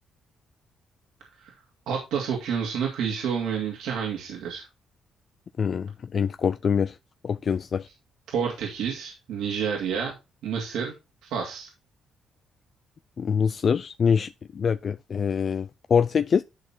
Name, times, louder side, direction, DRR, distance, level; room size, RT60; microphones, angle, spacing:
voice 1, 1.9-4.6 8.3-10.1 10.4-10.9 11.2-11.7, right 7 dB, 85° right, 2.5 m, -29 dB
voice 2, 5.6-7.0 7.2-7.9 13.2-16.4, left 6 dB, 45° left, 0.4 m, -24 dB
11.5 x 4.2 x 4.4 m
cardioid pair, 90°, 0 cm